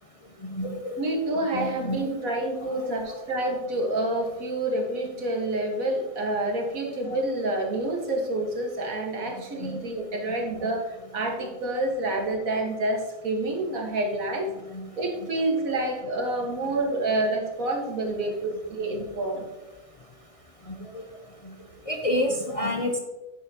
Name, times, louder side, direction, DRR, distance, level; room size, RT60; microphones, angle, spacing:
voice 1, 0.4-1.0 1.5-2.1 2.7-2.9 9.3-9.8 10.6-10.7 14.7-14.9 20.9-21.0 21.9-23.0, left 1 dB, 35° left, 1 dB, 0.6 m, -29 dB
voice 2, 1.0-14.5 15.0-19.5, right 2 dB, 80° right, 1 dB, 1.9 m, -28 dB
9.4 x 7.3 x 2.8 m, 1.1 s
omnidirectional pair, 1.4 m